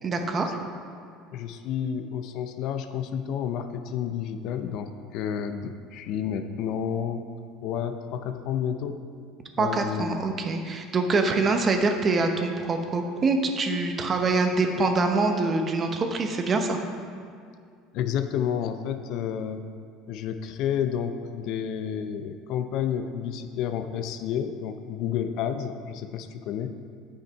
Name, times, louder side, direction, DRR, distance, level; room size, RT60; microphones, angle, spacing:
voice 1, 0.0-0.5 9.6-16.8, right 3 dB, 35° right, 5 dB, 0.9 m, -25 dB
voice 2, 1.3-7.2 7.6-9.0 9.6-10.2 17.9-19.6 20.1-26.8, left 8 dB, 65° left, 9 dB, 0.5 m, -30 dB
8.7 x 5.6 x 4.5 m, 2.2 s
supercardioid pair, 90°, 0 cm